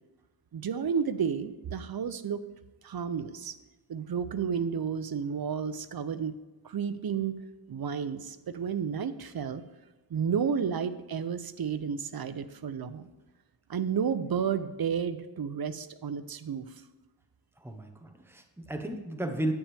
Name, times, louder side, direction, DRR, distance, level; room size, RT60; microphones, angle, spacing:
voice 1, 0.5-2.4 2.8-3.5 3.9-6.3 6.6-7.4 7.7-9.6 10.1-13.1 13.7-16.7, right 7 dB, 50° right, 12 dB, 0.7 m, -31 dB
voice 2, 17.6-19.5, right 1 dB, 5° right, 5 dB, 1.0 m, -34 dB
10.0 x 8.8 x 3.5 m, 1.1 s
wide cardioid pair, 85°, 46 cm